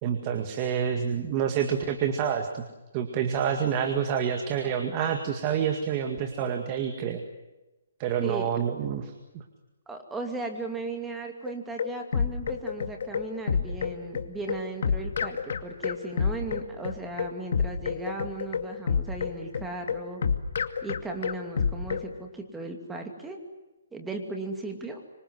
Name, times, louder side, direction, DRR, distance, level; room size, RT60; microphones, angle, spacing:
voice 1, 0.0-2.6 2.9-7.2 8.0-9.4, right 8 dB, 25° right, 5 dB, 2.0 m, -28 dB
voice 2, 9.9-20.2 20.8-23.4 23.9-25.0, right 3 dB, 5° right, 3 dB, 2.6 m, -37 dB
sound 1, 11.5-22.1, left 6 dB, 60° left, 2.3 m, -28 dB
26.0 x 25.5 x 8.0 m, 1.1 s
hypercardioid pair, 165°, 0 cm